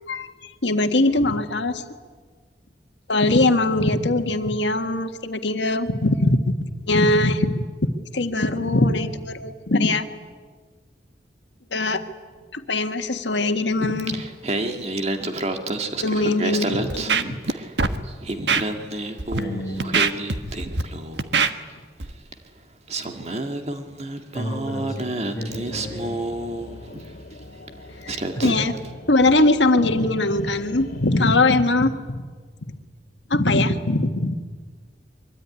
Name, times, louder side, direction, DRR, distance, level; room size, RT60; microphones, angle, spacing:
voice 1, 0.1-1.8 3.1-7.6 8.1-10.0 11.7-12.0 12.5-14.2 16.0-17.4 28.0-28.7 29.1-32.2 33.3-34.4, left 2 dB, 85° left, 7 dB, 1.7 m, -21 dB
Singing, 13.8-17.8 18.1-21.3 22.3-22.4 22.9-27.1 27.7-27.8 28.1-28.9, right 2 dB, 40° right, 1.9 m, -29 dB
Scratching (performance technique), 16.9-17.5 17.8-18.0 18.5-18.6 19.2-19.4 19.8-20.8 21.2-21.5 22.0-22.1, right 5 dB, 70° right, 1.4 m, -22 dB
voice 2, 19.4-20.0 24.3-25.1 25.3-26.1 28.3-28.8, equal, 20° left, 0 dB, 6.1 m, -32 dB
sound 1, 25.5-31.6, left 1 dB, 55° left, 2.5 m, -43 dB
24.0 x 23.5 x 9.8 m, 1.5 s
head